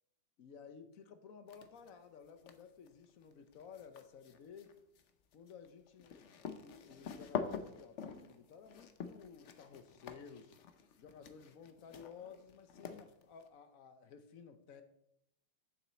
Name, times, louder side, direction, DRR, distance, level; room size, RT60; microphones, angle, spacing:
voice 1, 0.4-4.8 5.3-10.6 11.0-14.8, left 6 dB, 55° left, 9 dB, 0.9 m, -55 dB
sound 1, 1.5-1.9 2.3-13.5, left 6 dB, 80° left, 0.6 m, -46 dB
7.4 x 7.1 x 6.9 m, 0.80 s
omnidirectional pair, 2.3 m